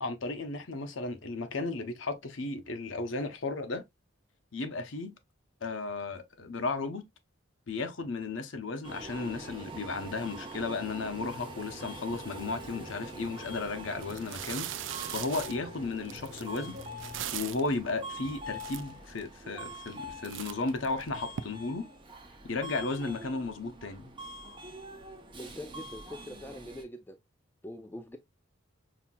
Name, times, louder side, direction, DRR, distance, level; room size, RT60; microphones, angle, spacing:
voice 1, 0.0-3.8 4.5-5.2 5.6-7.1 7.7-14.7 15.1-16.8 17.3-21.9 22.4-24.1, left 3 dB, 70° left, 0.8 m, -34 dB
Subway metro underground, 8.8-26.8, right 1 dB, 25° right, 0.8 m, -45 dB
sound 1, 11.0-17.3, left 1 dB, 35° left, 0.9 m, -50 dB
sound 2, 13.4-13.5 14.0-17.7 18.3-18.4 18.5-19.3 19.7-20.0 20.2-21.4, right 11 dB, 65° right, 0.4 m, -40 dB
voice 2, 25.3-27.2 27.6-28.2, left 1 dB, 10° left, 0.4 m, -43 dB
5.7 x 2.8 x 2.2 m
head